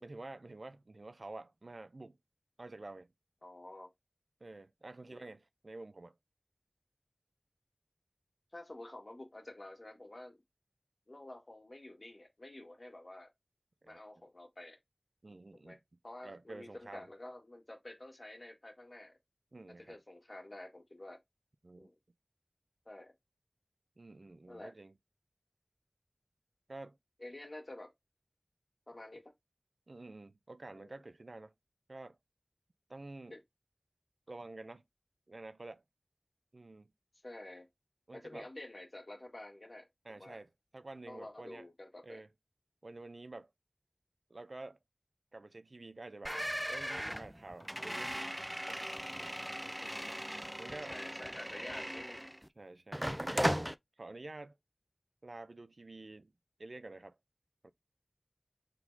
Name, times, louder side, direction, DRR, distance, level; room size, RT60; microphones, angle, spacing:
voice 1, 0.0-2.2 2.6-3.1 4.4-6.2 13.8-14.0 15.2-15.8 16.2-17.1 19.5-20.0 21.6-21.9 24.0-24.9 26.7-27.0 29.9-31.5 31.9-32.2 32.9-33.4 34.3-34.8 35.3-35.8 36.5-36.9 38.1-38.5 40.0-41.7 42.0-42.3 42.8-43.5 44.3-44.8 45.3-46.4 46.7-48.5 49.1-49.4 50.6-51.0 52.6-53.6 54.0-54.6 55.2-56.3 56.6-57.2 57.6-57.7, right 2 dB, 75° right, 0.5 m, -49 dB
voice 2, 3.4-3.9 5.1-5.3 8.5-10.4 11.1-13.3 13.8-14.8 15.6-15.8 16.0-19.2 19.9-21.2 21.8-22.0 22.9-23.1 24.5-24.7 27.2-27.9 28.9-29.3 30.7-31.0 33.3-33.4 37.2-37.7 38.1-40.4 41.1-42.2 49.4-50.2 50.9-52.2, left 1 dB, 55° left, 1.7 m, -49 dB
sound 1, 46.2-52.5 52.9-53.7, equal, 5° right, 0.3 m, -37 dB
4.5 x 3.9 x 2.7 m
wide cardioid pair, 45°, 0 cm